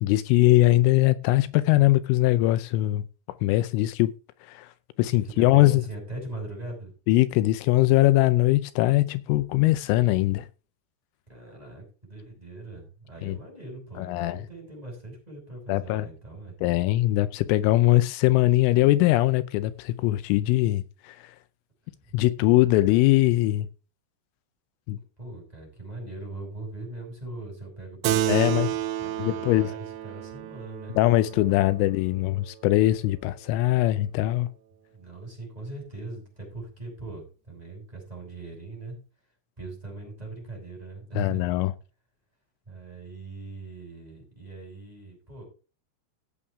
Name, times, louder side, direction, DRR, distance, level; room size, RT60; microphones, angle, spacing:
voice 1, 0.0-3.0 3.4-4.1 4.4-4.7 5.0-5.8 7.1-10.5 13.2-13.4 14.0-14.4 15.7-16.1 16.6-21.4 22.1-23.7 24.9-25.0 28.3-28.7 29.2-29.7 31.0-34.5 41.2-41.7, left 17 dB, 85° left, 3.1 m, -21 dB
voice 2, 5.1-6.9 11.3-16.5 22.0-22.1 25.2-31.0 31.6-31.7 34.9-39.0 39.6-41.7 42.7-45.4, right 2 dB, 10° right, 5.4 m, -40 dB
Keyboard (musical), 28.0-32.9, right 12 dB, 80° right, 2.7 m, -31 dB
17.0 x 7.2 x 3.5 m
omnidirectional pair, 5.7 m